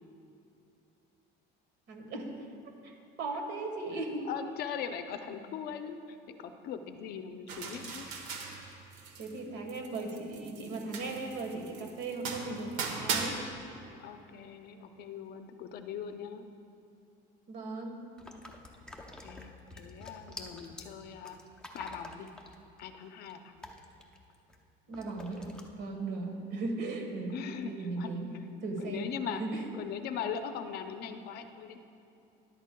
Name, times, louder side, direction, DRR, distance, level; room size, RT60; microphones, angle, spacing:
voice 1, 1.9-2.4 2.8-4.3 9.2-13.4 17.5-18.0 24.9-25.5 25.8-28.3 28.6-29.1 29.4-29.6, right 3 dB, 60° right, 3 dB, 1.4 m, -37 dB
voice 2, 4.2-8.1 13.9-16.4 19.2-21.4 21.7-22.3 22.8-23.6 27.3-28.2 28.8-31.8, left 7 dB, 55° left, 8 dB, 0.5 m, -40 dB
sound 1, 7.5-9.4 9.7-13.3, right 5 dB, 90° right, 1.2 m, -38 dB
sound 2, 18.2-24.6 24.9-25.6, left 2 dB, 5° left, 0.6 m, -48 dB
13.0 x 11.0 x 2.2 m, 2.8 s
cardioid pair, 155°, 20 cm